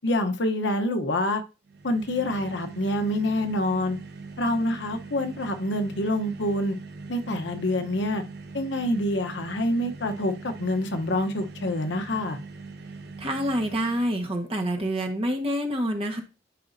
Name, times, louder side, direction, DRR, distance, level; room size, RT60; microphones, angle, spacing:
voice 1, 0.0-1.4 1.8-4.0 4.4-6.8 7.1-8.2 8.5-12.4, left 1 dB, 75° left, 0.9 m, -26 dB
sound 1, 1.7-14.3, right 3 dB, 60° right, 1.0 m, -42 dB
voice 2, 13.2-16.2, equal, 30° right, 1.3 m, -27 dB
11.0 x 4.9 x 2.7 m
head